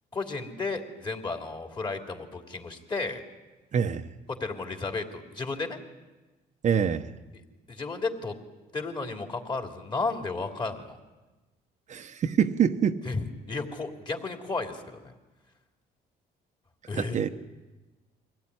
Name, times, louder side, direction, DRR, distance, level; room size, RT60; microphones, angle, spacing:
voice 1, 0.1-3.2 4.3-5.8 7.7-8.3 8.7-11.0 13.0-15.1 16.9-17.2, left 3 dB, 25° left, 3 dB, 3.1 m, -33 dB
voice 2, 3.7-4.1 6.6-7.1 11.9-13.0 16.9-17.3, right 7 dB, 45° right, 6 dB, 1.0 m, -25 dB
24.0 x 17.0 x 9.7 m, 1.2 s
cardioid pair, 110°, 17 cm